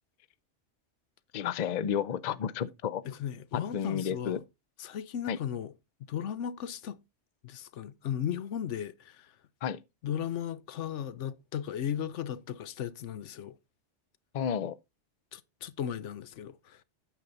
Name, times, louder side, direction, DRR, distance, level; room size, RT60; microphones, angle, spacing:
voice 1, 1.3-3.0 3.5-4.4 5.3-5.4 9.6-9.8 14.3-14.8, left 8 dB, 50° left, 0.5 m, -31 dB
voice 2, 3.0-4.4 4.8-5.7 6.1-7.0 7.4-9.4 10.0-13.6 15.3-16.8, left 9 dB, 85° left, 1.0 m, -36 dB
8.9 x 6.9 x 3.9 m
omnidirectional pair, 1.2 m